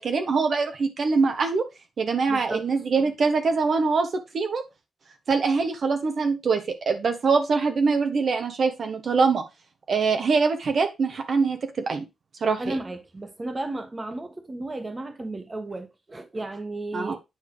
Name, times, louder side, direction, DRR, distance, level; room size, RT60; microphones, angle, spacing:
voice 1, 0.0-1.6 2.0-4.1 4.3-4.6 5.3-9.4 9.9-12.0 12.4-12.8 16.9-17.1, right 4 dB, 60° right, 1.1 m, -23 dB
voice 2, 2.3-2.6 12.6-17.2, right 2 dB, 25° right, 1.4 m, -34 dB
9.2 x 3.4 x 4.8 m
cardioid pair, 95°, 0 cm